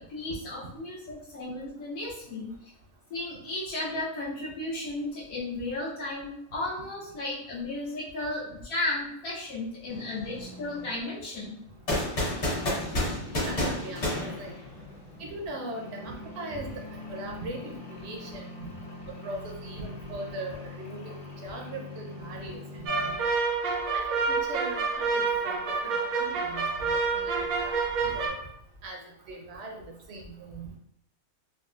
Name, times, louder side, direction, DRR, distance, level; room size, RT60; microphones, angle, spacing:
voice 1, 0.0-2.5 3.1-11.6, left 2 dB, 75° left, -7 dB, 1.3 m, -34 dB
sound 1, 9.9-23.2, left 3 dB, 35° left, 1.2 m, -44 dB
sound 2, 11.9-15.1, left 1 dB, 55° left, 1.5 m, -29 dB
voice 2, 13.4-14.5 15.3-16.8 17.1-18.5 19.2-23.2 23.9-27.8 28.0-28.4 28.8-29.0 29.3-30.7, right 2 dB, 60° right, 0 dB, 0.7 m, -40 dB
sound 3, 22.9-28.3, right 4 dB, 85° right, 1.1 m, -28 dB
3.8 x 2.2 x 2.4 m, 0.72 s
omnidirectional pair, 1.5 m